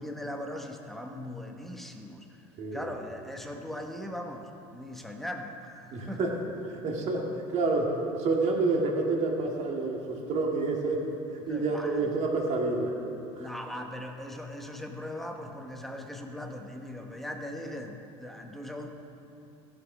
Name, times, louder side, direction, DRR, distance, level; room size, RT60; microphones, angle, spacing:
voice 1, 0.0-6.2 11.5-12.1 13.4-18.9, left 1 dB, ahead, 2 dB, 1.1 m, -39 dB
voice 2, 5.9-6.3 6.7-11.0 11.3-13.0 13.4-13.5, right 3 dB, 55° right, 0 dB, 2.1 m, -28 dB
15.0 x 6.2 x 6.1 m, 2.9 s
supercardioid pair, 105°, 14 cm